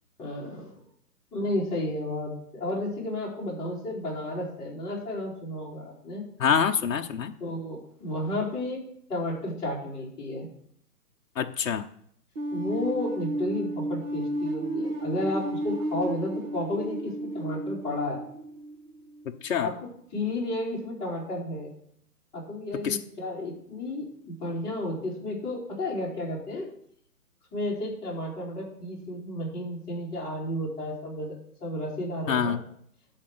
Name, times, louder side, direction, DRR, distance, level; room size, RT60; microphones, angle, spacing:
voice 1, 0.2-0.8 1.3-6.2 7.4-8.8 9.1-10.5 12.5-18.2 19.6-19.7 20.1-21.7 22.3-26.7 27.5-32.6, left 1 dB, 10° left, -8 dB, 3.7 m, -32 dB
voice 2, 6.4-7.3 11.4-11.9 19.4-19.7 22.8-23.0 32.3-32.6, left 7 dB, 55° left, 3 dB, 0.9 m, -25 dB
sound 1, 12.4-19.2, right 1 dB, 35° right, 1.7 m, -32 dB
11.5 x 4.4 x 7.7 m, 0.67 s
hypercardioid pair, 160°, 48 cm